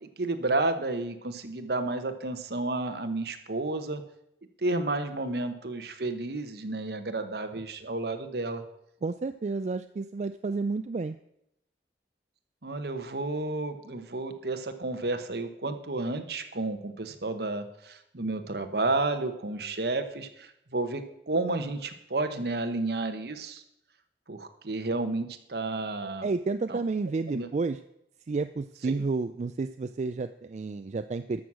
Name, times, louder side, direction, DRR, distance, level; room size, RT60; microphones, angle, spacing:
voice 1, 0.0-4.0 4.6-8.6 12.6-23.6 24.3-26.3 26.7-26.8 27.3-27.5 28.9-29.0, right 2 dB, 65° right, 8 dB, 1.1 m, -31 dB
voice 2, 9.0-11.2 26.2-27.8 28.3-31.4, right 3 dB, 40° right, 9 dB, 0.3 m, -31 dB
13.0 x 6.4 x 6.1 m, 0.79 s
head